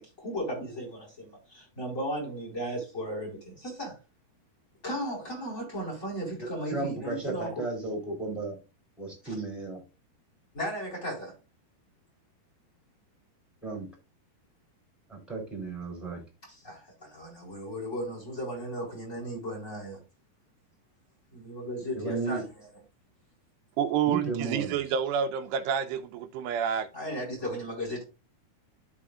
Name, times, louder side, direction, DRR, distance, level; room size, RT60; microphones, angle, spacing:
voice 1, 0.0-3.9 4.8-7.6 9.2-9.3 10.5-11.3 16.5-20.0 21.3-22.4 26.6-28.0, equal, 20° left, 4.1 m, -36 dB
voice 2, 6.4-8.6 9.0-9.8 13.6-13.9 15.1-16.2 21.9-22.4 24.0-24.8, right 3 dB, ahead, 2.9 m, -34 dB
voice 3, 23.8-26.9, right 8 dB, 85° right, 2.9 m, -28 dB
14.0 x 5.1 x 2.4 m
omnidirectional pair, 4.6 m